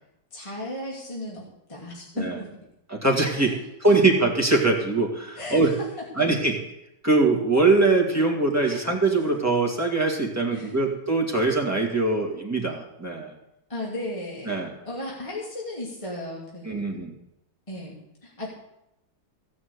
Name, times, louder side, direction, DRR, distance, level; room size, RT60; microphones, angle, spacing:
voice 1, 0.3-2.5 3.3-4.0 5.3-5.9 8.6-8.9 10.5-10.9 13.7-14.6 14.8-16.9 17.7-17.9 18.2-18.6, left 1 dB, 15° left, -4 dB, 2.6 m, -35 dB
voice 2, 2.9-3.5 3.8-5.7 6.2-6.5 7.0-13.3 14.5-14.7 16.7-17.1, right 3 dB, 10° right, -1 dB, 2.1 m, -22 dB
16.5 x 6.2 x 8.2 m, 0.84 s
omnidirectional pair, 2.2 m